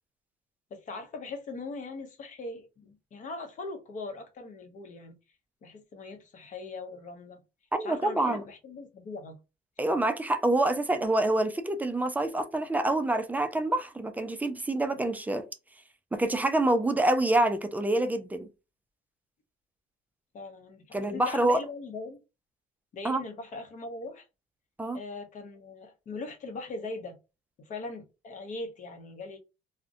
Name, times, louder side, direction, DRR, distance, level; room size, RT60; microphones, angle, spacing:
voice 1, 0.7-5.2 5.6-7.4 7.8-9.4 9.9-10.1 20.3-22.2 22.9-24.2 24.9-27.2 27.6-29.4, left 3 dB, 50° left, 0.7 m, -40 dB
voice 2, 7.7-8.4 9.8-15.5 16.1-18.5 20.9-21.6 23.0-23.2 24.8-25.0, right 2 dB, 10° right, 0.3 m, -26 dB
2.4 x 2.1 x 2.5 m
cardioid pair, 110°, 17 cm